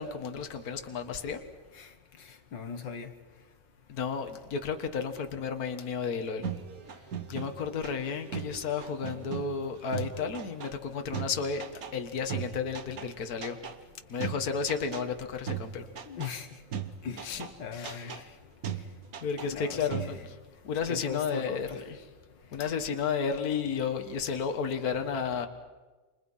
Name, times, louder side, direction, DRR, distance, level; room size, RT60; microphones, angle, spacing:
voice 1, 0.0-1.4 3.9-6.5 7.3-11.6 11.9-13.6 14.1-15.9 17.2-17.5 17.7-18.1 19.2-20.4 20.6-21.7 22.5-25.5, left 6 dB, 55° left, 6 dB, 2.0 m, -32 dB
voice 2, 2.5-3.1 16.1-16.5 17.0-18.1 19.5-20.1 20.9-21.8, left 6 dB, 75° left, 7 dB, 2.1 m, -39 dB
sound 1, 6.4-12.0 12.3-13.1 13.4-13.8 14.2-15.1 15.5-16.3 16.7-17.5 17.8-18.2 18.6-19.6 19.9-20.3, right 8 dB, 55° right, 1.6 m, -38 dB
28.5 x 26.5 x 5.7 m, 1.3 s
omnidirectional pair, 2.0 m